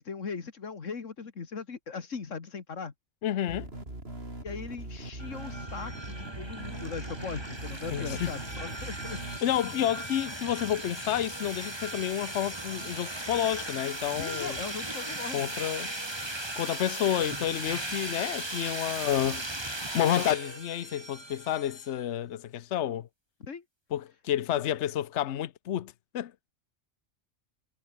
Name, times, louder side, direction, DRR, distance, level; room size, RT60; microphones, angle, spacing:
voice 1, 0.0-2.9 4.4-9.2 14.2-15.5 23.4-23.6, left 5 dB, 90° left, 2.2 m, -39 dB
voice 2, 3.2-3.7 7.9-8.3 9.2-14.6 15.3-15.9 16.6-19.4 19.9-23.1 23.9-26.3, left 11 dB, 70° left, 1.1 m, -30 dB
sound 1, 3.5-9.4, right 2 dB, 55° right, 5.6 m, -41 dB
sound 2, 5.2-22.0, right 1 dB, 20° right, 2.7 m, -37 dB
omnidirectional pair, 1.3 m